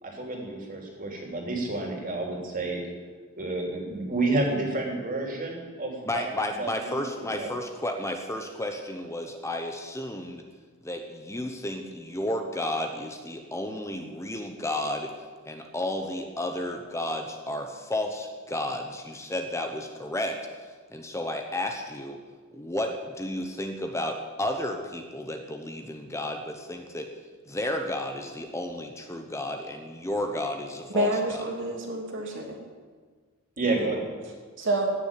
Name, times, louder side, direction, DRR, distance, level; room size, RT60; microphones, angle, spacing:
voice 1, 0.0-2.8 3.3-6.3 6.6-7.5 32.2-32.4 33.6-34.1, right 2 dB, 40° right, 0 dB, 3.3 m, -30 dB
voice 2, 6.1-10.4 10.8-15.1 15.5-20.4 20.6-22.2 22.5-27.1 27.5-31.5, left 1 dB, 15° left, 4 dB, 1.0 m, -32 dB
voice 3, 30.9-32.6 33.7-33.8 34.6-34.9, right 1 dB, 60° right, 0 dB, 2.9 m, -28 dB
16.5 x 7.1 x 9.9 m, 1.5 s
head